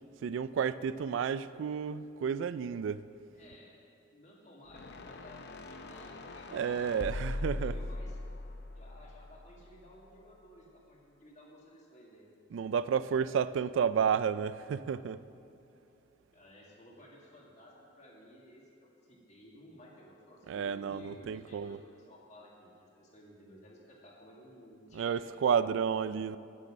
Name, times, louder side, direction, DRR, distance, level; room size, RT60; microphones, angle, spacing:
voice 1, 0.2-3.0 6.5-7.8 12.5-15.2 20.5-21.8 24.9-26.4, right 7 dB, 75° right, 0.3 m, -31 dB
voice 2, 3.3-3.8 4.1-8.2 8.7-12.3 16.3-25.3, equal, 35° left, 2.0 m, -55 dB
sound 1, 4.7-9.9, left 2 dB, 60° left, 0.6 m, -41 dB
9.4 x 9.3 x 6.3 m
head